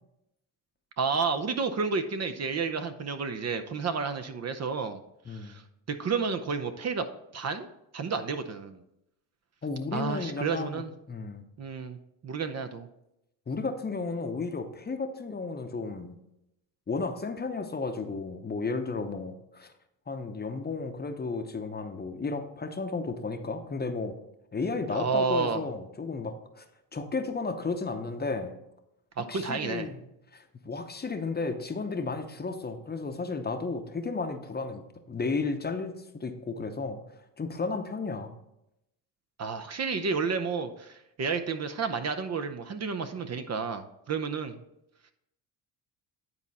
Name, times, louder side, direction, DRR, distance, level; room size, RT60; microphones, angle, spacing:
voice 1, 1.0-5.0 5.3-5.6 5.9-7.0 7.3-7.7 7.9-8.8 9.9-10.9 11.6-12.0 12.2-12.9 24.9-25.6 29.2-29.9 39.4-44.6, right 5 dB, 40° right, 9 dB, 0.7 m, -31 dB
voice 2, 9.6-11.4 13.5-16.2 16.9-19.7 20.1-24.2 24.5-26.6 26.9-28.5 29.3-30.0 30.3-34.8 35.1-37.0 37.4-38.3, left 4 dB, 25° left, 6 dB, 0.8 m, -33 dB
9.7 x 4.2 x 4.1 m, 0.83 s
supercardioid pair, 80°, 41 cm